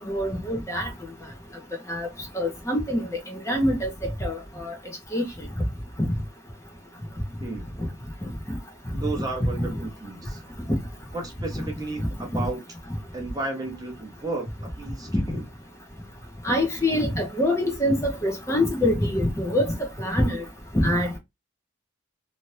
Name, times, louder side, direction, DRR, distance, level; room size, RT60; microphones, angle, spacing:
voice 1, 0.1-0.9 1.9-2.1 2.3-3.9 4.2-4.7 5.1-5.2 6.0-6.1 9.6-9.7 11.6-11.7 12.3-12.4 15.1-15.2 16.4-20.4 20.7-21.2, left 1 dB, 15° left, 0.7 m, -25 dB
voice 2, 8.9-10.4 11.1-12.6 13.1-15.4, right 2 dB, 20° right, 0.7 m, -33 dB
2.7 x 2.4 x 3.2 m
head